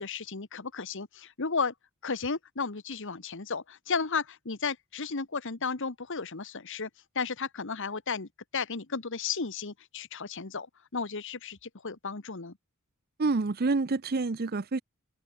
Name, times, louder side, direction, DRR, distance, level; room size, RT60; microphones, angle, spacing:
voice 1, 0.0-1.7 2.0-6.9 7.1-10.7 10.9-12.5, left 5 dB, 60° left, 1.3 m, -34 dB
voice 2, 13.2-14.8, right 3 dB, 45° right, 0.6 m, -27 dB
open air
head